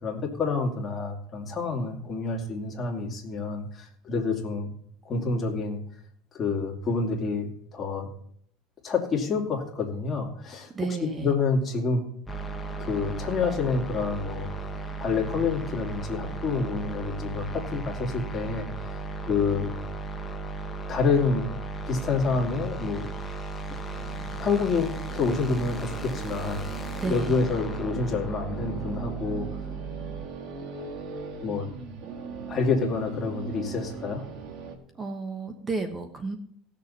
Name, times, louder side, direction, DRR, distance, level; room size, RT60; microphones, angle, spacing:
voice 1, 0.0-4.7 5.0-5.8 6.3-8.1 8.8-10.7 11.0-12.0 12.8-14.5 15.0-19.7 20.9-21.5 21.9-23.1 24.4-26.6 27.0-29.5 31.4-31.7 32.5-34.3, left 4 dB, 25° left, 0 dB, 2.5 m, -28 dB
voice 2, 10.7-11.3 27.0-27.4 34.9-36.4, right 3 dB, 20° right, 6 dB, 1.1 m, -32 dB
sound 1, 12.3-30.3, right 3 dB, 10° left, 1.2 m, -35 dB
sound 2, 23.8-34.8, right 5 dB, 55° right, 1.9 m, -40 dB
18.5 x 6.8 x 4.2 m, 0.65 s
supercardioid pair, 140°, 0 cm